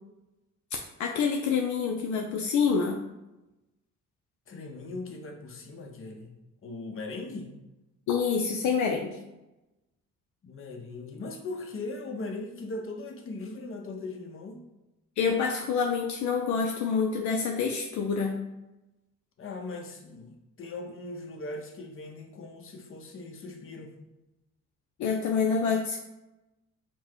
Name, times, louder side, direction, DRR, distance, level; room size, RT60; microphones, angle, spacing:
voice 1, 1.0-3.1 8.1-9.2 15.2-18.5 25.0-26.0, left 5 dB, 70° left, 2 dB, 0.5 m, -27 dB
voice 2, 4.5-6.3 6.6-7.6 10.4-14.6 19.4-23.9, left 2 dB, 45° left, 3 dB, 0.8 m, -39 dB
4.4 x 2.1 x 4.5 m, 0.98 s
cardioid pair, 90°, 30 cm